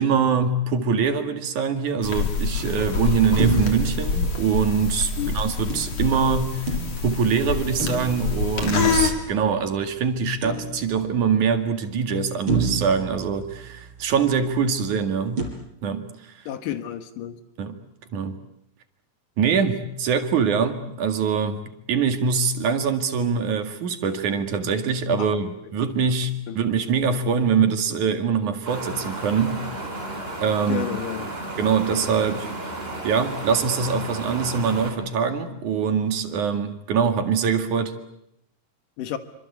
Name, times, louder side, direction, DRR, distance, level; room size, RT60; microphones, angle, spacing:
voice 1, 0.0-15.5 15.8-16.4 17.6-17.8 18.1-18.4 19.4-29.7 30.4-31.0 31.6-32.5 33.0-38.0, right 6 dB, 70° right, 7 dB, 3.5 m, -23 dB
sound 1, 2.0-9.1, left 4 dB, 50° left, 4.3 m, -26 dB
sound 2, 3.4-5.0 5.7-7.3 7.8-9.7 10.4-11.3 11.8-11.9 12.5-14.1 15.4-15.5, right 4 dB, 40° right, 5.4 m, -29 dB
voice 2, 16.5-17.4 25.2-25.3 26.5-26.6 30.7-31.3 39.0-39.2, left 10 dB, 85° left, 9 dB, 3.1 m, -30 dB
Wind, 28.7-34.9, right 1 dB, 15° right, 4.1 m, -33 dB
26.5 x 25.5 x 8.4 m, 0.76 s
omnidirectional pair, 3.7 m